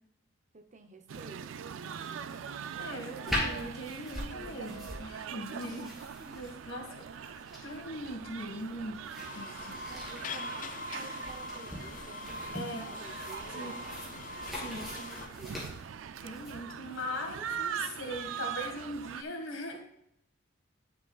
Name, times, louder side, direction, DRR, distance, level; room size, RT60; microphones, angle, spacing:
voice 1, 0.5-2.4 2.7-3.7 5.3-5.9 6.2-6.4 9.8-14.0 14.5-15.8, right 3 dB, 35° right, 5 dB, 0.7 m, -52 dB
sound 1, 1.1-19.2, right 8 dB, 70° right, 0.3 m, -42 dB
voice 2, 2.8-5.9 6.3-9.9 12.5-12.9 13.5-13.7 14.6-14.9 16.2-19.8, left 1 dB, 80° left, 2 dB, 1.7 m, -40 dB
sound 2, 3.3-16.5, left 1 dB, ahead, 2.9 m, -42 dB
sound 3, 9.2-15.3, left 2 dB, 40° left, 0.5 m, -42 dB
10.5 x 7.2 x 2.3 m, 0.72 s
head